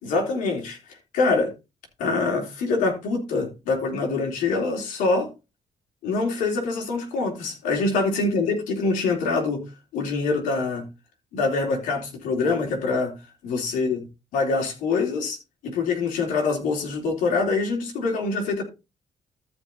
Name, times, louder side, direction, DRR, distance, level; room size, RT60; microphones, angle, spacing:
voice 1, 0.0-1.5 2.0-5.3 6.0-9.6 9.9-10.9 11.3-13.1 13.4-14.0 14.3-15.4 15.6-18.6, left 3 dB, 80° left, 3.5 m, -25 dB
14.0 x 5.4 x 4.2 m
supercardioid pair, 60°, 13 cm